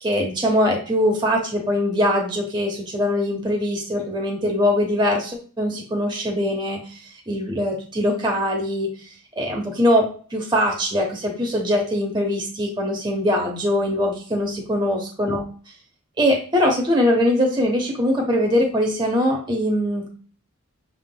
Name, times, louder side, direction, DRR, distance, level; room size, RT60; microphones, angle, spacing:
voice 1, 0.0-6.8 7.3-8.9 9.4-10.0 10.3-15.4 16.2-20.1, left 1 dB, 20° right, 1 dB, 1.0 m, -22 dB
6.3 x 3.7 x 2.2 m, 0.40 s
head